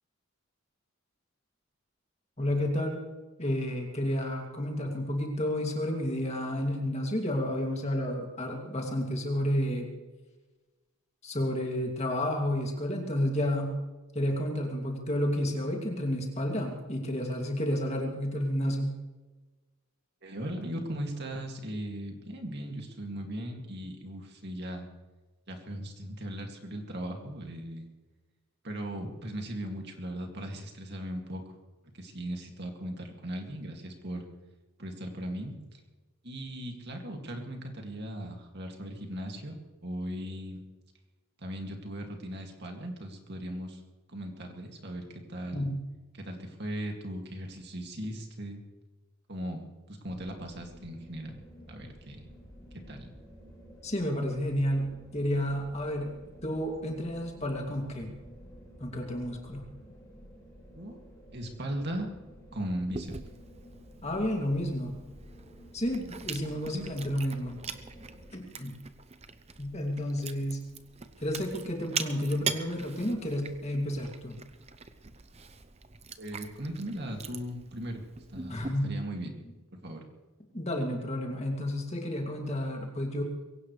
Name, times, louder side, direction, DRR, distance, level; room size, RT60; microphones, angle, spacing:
voice 1, 2.4-3.0 3.4-9.9 11.2-13.8 14.1-19.0 45.5-45.8 53.8-56.1 56.4-58.1 58.8-59.6 64.0-64.9 65.7-67.6 68.3-68.8 69.6-70.6 71.2-74.4 78.5-78.9 80.5-83.2, left 1 dB, 30° left, 1 dB, 2.6 m, -31 dB
voice 2, 20.2-24.9 25.5-27.9 28.6-31.4 31.9-34.3 34.8-35.8 36.2-39.5 39.8-40.6 41.4-43.8 44.1-45.7 46.1-48.6 49.3-51.4 51.7-52.2 52.9-53.1 60.7-61.0 61.3-62.1 62.5-63.1 66.7-66.9 76.2-78.0 78.3-79.3 79.8-80.1, right 1 dB, 50° right, 2 dB, 2.4 m, -38 dB
sound 1, 50.0-68.3, equal, 15° left, 7.0 m, -52 dB
Chewing mastication, 62.9-78.7, right 6 dB, 30° right, 0.8 m, -42 dB
22.5 x 17.5 x 3.3 m, 1.2 s
head